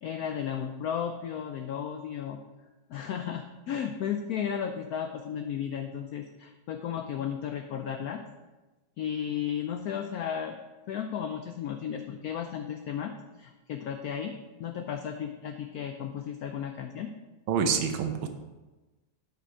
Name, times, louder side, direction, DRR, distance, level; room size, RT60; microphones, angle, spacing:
voice 1, 0.0-2.4 2.9-8.2 9.0-10.6 10.9-13.1 13.4-17.1, left 8 dB, 90° left, 6 dB, 0.8 m, -34 dB
voice 2, 17.5-18.3, right 6 dB, 80° right, 6 dB, 1.6 m, -27 dB
7.9 x 5.1 x 4.9 m, 1.1 s
omnidirectional pair, 2.2 m